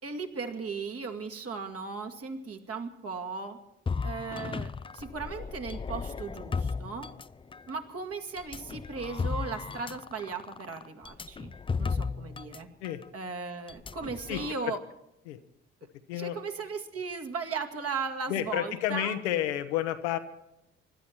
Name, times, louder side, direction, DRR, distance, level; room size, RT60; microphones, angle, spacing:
voice 1, 0.0-3.6 4.0-7.1 7.7-11.5 11.8-12.7 13.1-14.8 16.1-19.2, right 4 dB, 45° right, 4 dB, 2.3 m, -37 dB
sound 1, 3.9-7.7 8.4-12.6 12.8-13.0 13.7-14.5, left 5 dB, 15° left, 0.5 m, -35 dB
voice 2, 14.3-14.7 15.3-15.4 16.1-16.4 18.3-20.2, left 12 dB, 80° left, 9 dB, 1.0 m, -30 dB
25.5 x 12.5 x 4.4 m, 0.87 s
figure-of-eight pair, 45°, 33 cm